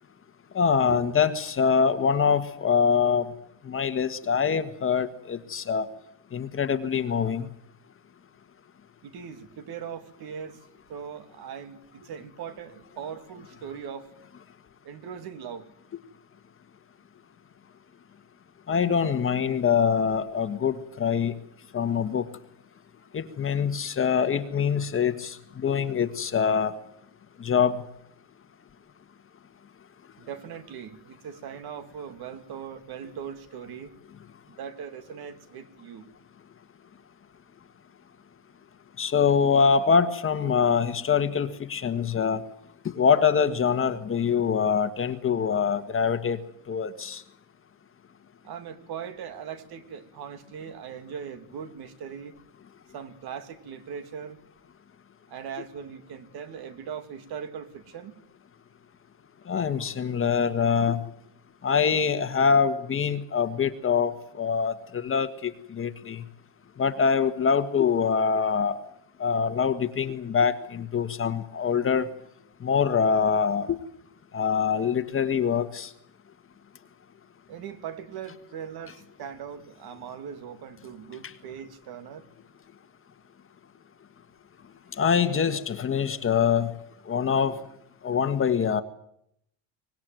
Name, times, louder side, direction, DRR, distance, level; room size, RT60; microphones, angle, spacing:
voice 1, 0.5-3.3 3.6-5.9 6.3-7.5 18.7-21.3 21.7-22.2 23.1-26.7 27.4-27.8 39.0-42.4 42.9-46.4 46.7-47.2 59.5-61.0 61.6-66.2 66.8-68.8 69.2-72.1 72.6-73.8 74.3-75.9 85.0-86.7 87.1-87.5 88.0-88.8, left 6 dB, 25° left, 10 dB, 1.6 m, -24 dB
voice 2, 9.0-10.6 10.9-14.1 14.8-15.7 30.2-33.9 34.6-36.0 48.4-52.4 52.9-54.4 55.3-58.2 77.5-82.2, right 7 dB, 50° right, 9 dB, 2.8 m, -40 dB
24.5 x 19.5 x 9.3 m, 0.74 s
cardioid pair, 145°, 46 cm